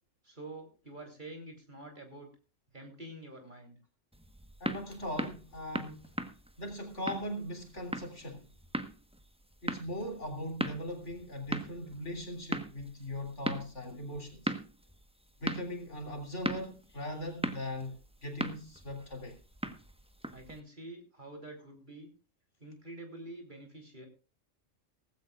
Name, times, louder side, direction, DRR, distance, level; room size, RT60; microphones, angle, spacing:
voice 1, 0.2-2.3 2.7-3.8 20.3-22.1 22.6-24.1, right 2 dB, 35° right, 3.8 m, -47 dB
sound 1, 4.1-20.6, right 1 dB, 5° right, 1.1 m, -40 dB
voice 2, 4.6-6.1 6.6-8.5 9.6-14.5 15.4-19.4, left 1 dB, 60° left, 3.6 m, -40 dB
18.0 x 15.5 x 2.5 m
omnidirectional pair, 1.4 m